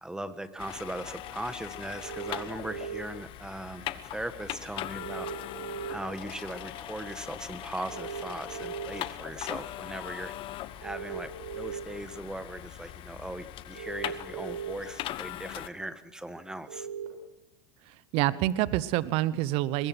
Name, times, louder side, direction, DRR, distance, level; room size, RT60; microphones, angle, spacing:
voice 1, 0.0-5.3 5.9-10.3 10.8-16.9, right 1 dB, 5° right, 11 dB, 1.6 m, -39 dB
sound 1, 0.6-15.7, left 13 dB, 50° left, 1.1 m, -40 dB
sound 2, 2.0-3.0 5.0-5.9 7.9-8.9 10.8-11.8 13.7-14.7 16.7-17.1, right 8 dB, 85° right, 7.9 m, -38 dB
voice 2, 17.9-19.9, right 15 dB, 55° right, 17 dB, 0.9 m, -27 dB
22.5 x 21.0 x 6.2 m, 0.90 s
hypercardioid pair, 100°, 11 cm